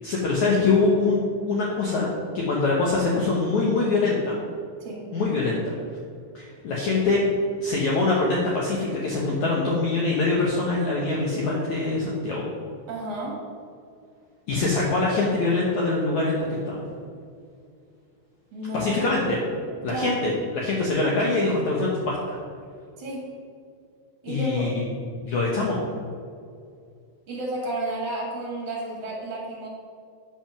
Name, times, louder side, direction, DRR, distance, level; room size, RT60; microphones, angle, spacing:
voice 1, 0.0-4.3 5.1-5.7 6.3-7.2 7.6-12.5 14.5-16.8 18.7-19.4 19.8-22.4 24.3-25.0 25.2-25.8, left 3 dB, 85° left, -4 dB, 1.6 m, -24 dB
voice 2, 12.9-13.4 18.5-19.1 19.9-20.2 23.0-23.2 24.2-24.7 27.3-29.7, right 1 dB, 45° right, -3 dB, 2.4 m, -31 dB
9.7 x 6.0 x 5.9 m, 2.3 s
omnidirectional pair, 5.2 m